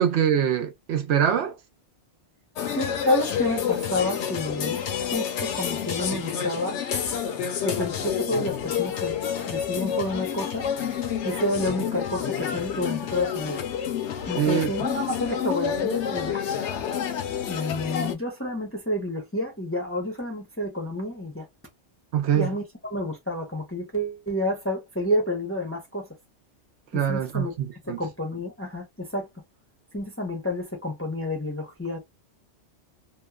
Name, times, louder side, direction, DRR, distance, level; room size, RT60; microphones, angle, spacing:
voice 1, 0.0-1.6 14.4-14.7 22.1-22.5 26.9-28.0, right 9 dB, 75° right, 0.9 m, -24 dB
sound 1, 2.6-18.1, left 8 dB, 75° left, 0.9 m, -29 dB
voice 2, 2.8-6.8 7.6-9.2 9.5-10.6 11.2-13.6 14.2-16.4 17.5-21.5 22.3-26.1 26.9-27.5 27.8-29.3 29.9-32.0, left 1 dB, 15° left, 0.5 m, -29 dB
2.9 x 2.1 x 2.3 m
omnidirectional pair, 1.2 m